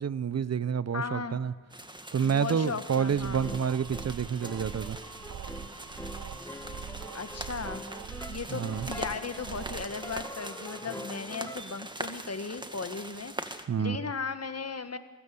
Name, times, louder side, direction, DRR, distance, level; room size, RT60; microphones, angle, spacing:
voice 1, 0.0-1.5 2.1-5.0 8.5-8.9 13.7-14.0, right 7 dB, 50° right, 17 dB, 0.7 m, -29 dB
voice 2, 0.9-1.4 2.2-3.6 7.1-7.8 8.3-15.0, left 5 dB, 45° left, 9 dB, 1.7 m, -37 dB
sound 1, 1.7-13.6, right 1 dB, 15° right, 1.8 m, -43 dB
sound 2, 2.9-10.2, right 9 dB, 80° right, 0.9 m, -43 dB
sound 3, 3.4-11.6, left 1 dB, 10° left, 1.5 m, -45 dB
22.5 x 17.0 x 7.0 m, 1.4 s
cardioid pair, 50°, 34 cm